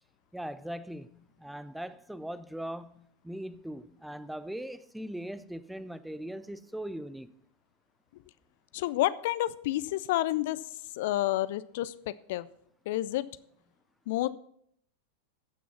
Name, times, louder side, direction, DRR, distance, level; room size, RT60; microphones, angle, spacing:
voice 1, 0.3-7.3, right 1 dB, 5° right, 0.5 m, -40 dB
voice 2, 8.7-10.6 10.9-12.5 12.9-13.3 14.1-14.3, left 15 dB, 50° left, 0.4 m, -29 dB
15.0 x 6.2 x 5.7 m
figure-of-eight pair, 90°, 0 cm